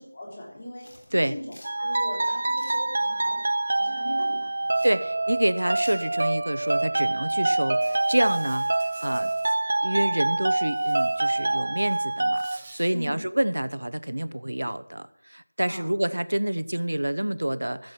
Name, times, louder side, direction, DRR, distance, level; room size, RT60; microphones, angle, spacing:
voice 1, 0.0-3.4 3.8-4.9 9.1-9.3 12.9-13.3 15.7-15.9, left 1 dB, 30° left, -2 dB, 3.3 m, -40 dB
sound 1, 0.8-6.0, left 1 dB, 50° left, 3.5 m, -53 dB
sound 2, 1.6-12.6, right 2 dB, 40° right, 0.4 m, -26 dB
voice 2, 4.8-9.3 9.8-17.9, right 1 dB, 85° right, 13 dB, 0.9 m, -27 dB
Insect, 7.8-9.6 10.7-11.5 11.8-12.9, right 3 dB, 15° right, 0.9 m, -49 dB
15.0 x 7.8 x 6.1 m, 0.78 s
figure-of-eight pair, 175°, 0 cm